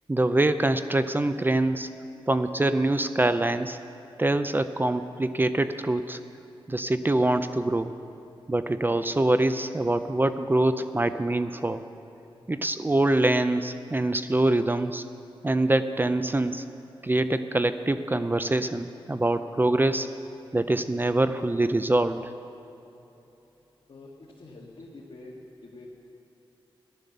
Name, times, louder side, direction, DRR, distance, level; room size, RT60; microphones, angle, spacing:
voice 1, 0.1-1.9 2.3-3.8 4.2-6.2 6.7-7.9 8.5-11.8 12.5-15.0 15.4-16.6 17.0-20.1 20.5-22.3, right 2 dB, 20° right, 11 dB, 0.5 m, -24 dB
voice 2, 23.9-25.3 25.6-25.9, left 2 dB, 65° left, -4 dB, 1.9 m, -46 dB
14.5 x 11.5 x 6.7 m, 3.0 s
cardioid pair, 70°, 10 cm